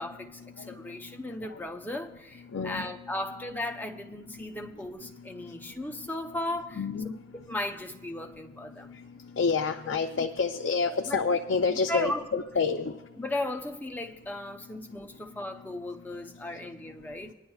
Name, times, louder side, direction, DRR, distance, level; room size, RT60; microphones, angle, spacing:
voice 1, 0.0-6.8 7.4-9.0 11.0-11.2 11.7-12.4 13.2-17.3, left 1 dB, 10° left, 2 dB, 0.7 m, -36 dB
voice 2, 0.6-1.2 1.5-1.6 2.5-2.9 4.6-4.7 6.8-7.2 8.8-9.0 9.3-13.0, left 5 dB, 80° left, 4 dB, 0.5 m, -29 dB
21.0 x 10.5 x 2.4 m, 1.1 s
head